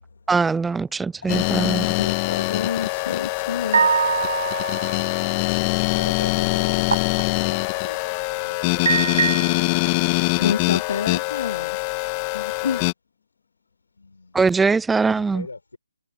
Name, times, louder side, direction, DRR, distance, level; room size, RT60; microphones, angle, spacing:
voice 1, 0.3-1.9 14.3-15.5, right 4 dB, 5° right, 0.3 m, -21 dB
sound 1, 1.3-12.9, left 25 dB, 25° left, 1.8 m, -23 dB
voice 2, 2.0-3.9 10.4-11.8 12.3-12.8, left 7 dB, 55° left, 2.6 m, -28 dB
sound 2, 3.7-5.2 6.9-7.2 7.8-8.1 8.8-9.9, right 6 dB, 55° right, 2.6 m, -22 dB
voice 3, 4.3-4.7 5.9-8.0 8.3-9.0 14.0-14.4 15.1-15.8, left 3 dB, 85° left, 6.6 m, -40 dB
figure-of-eight pair, 155°, 0 cm